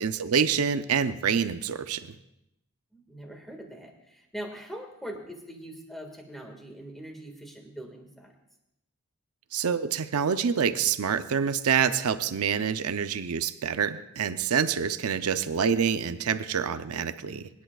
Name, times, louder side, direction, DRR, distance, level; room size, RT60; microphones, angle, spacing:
voice 1, 0.0-2.1 9.5-17.5, right 7 dB, 90° right, 10 dB, 0.5 m, -27 dB
voice 2, 2.9-8.3 15.4-15.5, right 1 dB, ahead, 2 dB, 1.7 m, -42 dB
23.5 x 10.5 x 2.3 m, 0.86 s
head